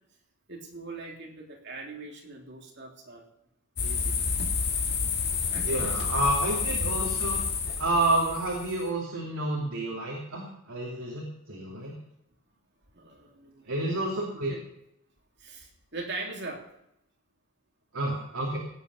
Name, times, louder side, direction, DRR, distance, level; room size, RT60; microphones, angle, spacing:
voice 1, 0.5-3.2 3.8-4.2 5.5-6.5 12.9-14.1 14.5-14.6 15.4-16.7, right 3 dB, 50° right, 0 dB, 3.1 m, -41 dB
sound 1, 3.8-8.9, left 5 dB, 50° left, 2.0 m, -29 dB
voice 2, 5.6-7.4 7.8-11.9 13.7-14.5 17.9-18.6, right 1 dB, 70° right, -3 dB, 2.8 m, -29 dB
17.5 x 8.6 x 5.5 m, 0.79 s
head